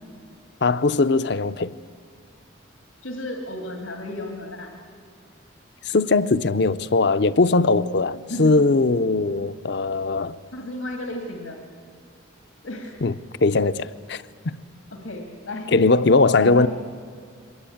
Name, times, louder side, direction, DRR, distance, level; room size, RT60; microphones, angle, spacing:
voice 1, 0.6-1.8 5.9-10.4 13.0-13.1 13.4-14.6 15.7-16.7, left 3 dB, 55° left, 0.6 m, -20 dB
voice 2, 3.0-4.7 8.3-8.5 10.5-11.6 12.6-13.0 14.9-15.7 16.4-16.7, left 1 dB, 85° left, 2.3 m, -33 dB
23.0 x 19.5 x 8.6 m
head